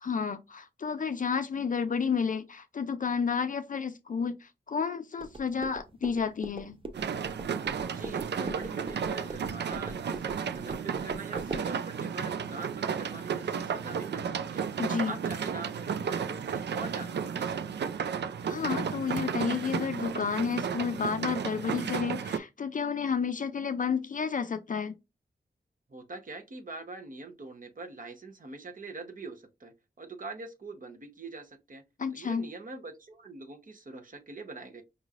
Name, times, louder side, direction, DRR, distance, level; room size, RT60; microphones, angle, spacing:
voice 1, 0.0-6.8 14.8-15.2 18.4-24.9 32.0-32.5, left 6 dB, 50° left, 0.4 m, -31 dB
sound 1, 5.2-11.7, right 2 dB, 30° right, 0.6 m, -42 dB
sound 2, 6.9-22.4, right 7 dB, 85° right, 0.4 m, -33 dB
voice 2, 7.8-17.8 25.9-31.8 32.1-34.8, right 3 dB, 50° right, 1.0 m, -44 dB
5.2 x 3.1 x 2.4 m
wide cardioid pair, 105°, 17 cm